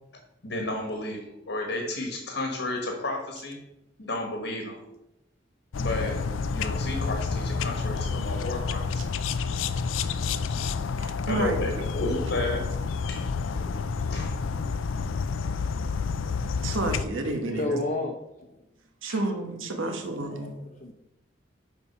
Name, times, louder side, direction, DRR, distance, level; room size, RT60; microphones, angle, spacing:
voice 1, 0.4-3.6 4.0-4.8 5.8-9.1 9.5-9.7 11.2-12.7 13.1-14.4 20.2-20.5, left 2 dB, 65° left, 2 dB, 1.5 m, -33 dB
sound 1, 5.7-17.1, left 5 dB, 80° left, 0.4 m, -29 dB
voice 2, 11.0-11.7 16.6-17.8 19.0-20.6, right 2 dB, 85° right, 4 dB, 1.4 m, -30 dB
voice 3, 17.5-18.6 19.1-19.2 19.9-20.0 20.3-20.9, left 2 dB, 45° left, 0 dB, 0.8 m, -32 dB
7.0 x 5.3 x 5.5 m, 0.86 s
head